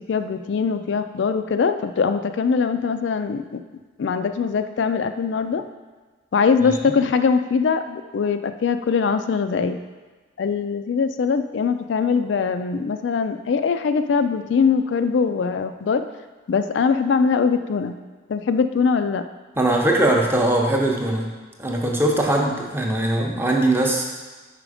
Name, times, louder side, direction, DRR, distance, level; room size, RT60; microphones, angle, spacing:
voice 1, 0.0-3.6 4.0-5.6 6.3-9.8 10.4-16.1 16.5-17.9 18.3-19.2, left 5 dB, 65° left, 9 dB, 0.3 m, -22 dB
voice 2, 19.6-21.3 21.6-24.0, right 1 dB, 10° right, 0 dB, 0.7 m, -20 dB
5.0 x 5.0 x 4.9 m, 1.3 s
head